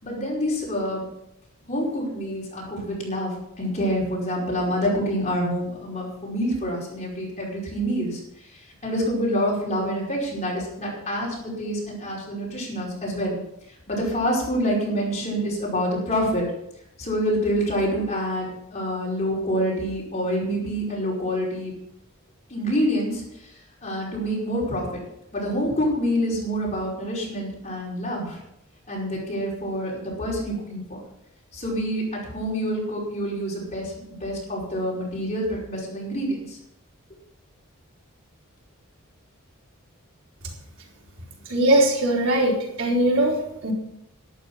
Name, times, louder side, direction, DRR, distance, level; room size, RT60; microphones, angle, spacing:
voice 1, 0.0-1.1 1.7-8.2 8.8-13.4 13.9-16.4 17.0-21.7 22.5-23.2 23.8-24.9 25.3-28.4 28.9-31.0 31.5-33.9 34.2-36.6, equal, 35° left, -3 dB, 5.3 m, -27 dB
voice 2, 41.5-43.7, right 1 dB, 65° right, -2 dB, 4.2 m, -21 dB
12.0 x 11.5 x 5.7 m, 0.80 s
head